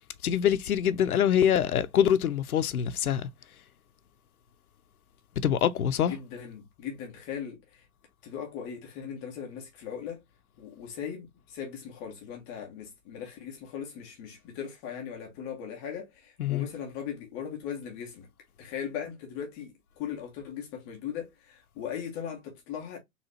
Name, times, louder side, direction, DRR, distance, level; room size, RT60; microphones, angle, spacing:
voice 1, 0.2-3.3 5.4-6.1 16.4-16.7, left 9 dB, 80° left, 0.6 m, -24 dB
voice 2, 6.1-7.8 8.2-10.2 10.6-18.3 18.6-23.0, left 8 dB, 10° left, 0.3 m, -39 dB
4.1 x 2.4 x 2.8 m
hypercardioid pair, 125°, 43 cm